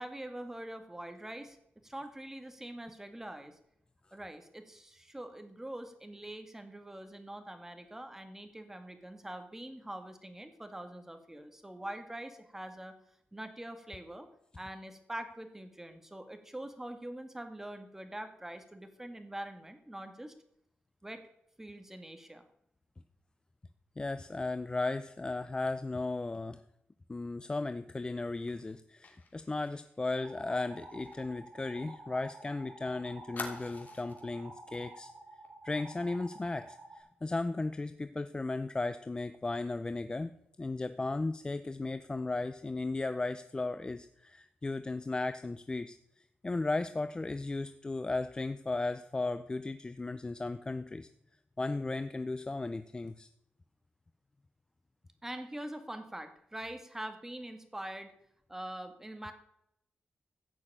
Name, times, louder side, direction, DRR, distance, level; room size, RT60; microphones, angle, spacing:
voice 1, 0.0-1.6 1.8-3.6 4.1-12.9 13.3-14.3 14.5-20.3 21.0-21.2 21.6-22.4 55.2-58.1 58.5-59.3, right 1 dB, 10° right, 7 dB, 2.0 m, -44 dB
voice 2, 24.0-26.6 27.1-35.1 35.6-40.3 40.6-46.0 46.4-51.1 51.6-53.3, left 3 dB, 25° left, 11 dB, 0.6 m, -35 dB
Fire, 29.0-32.5 32.7-32.8 33.3-34.3 34.7-34.9 35.2-35.5, left 4 dB, 55° left, 3.0 m, -47 dB
sound 1, 30.2-37.0, right 2 dB, 85° right, 5.1 m, -51 dB
15.0 x 6.4 x 8.8 m, 0.77 s
cardioid pair, 100°, 4 cm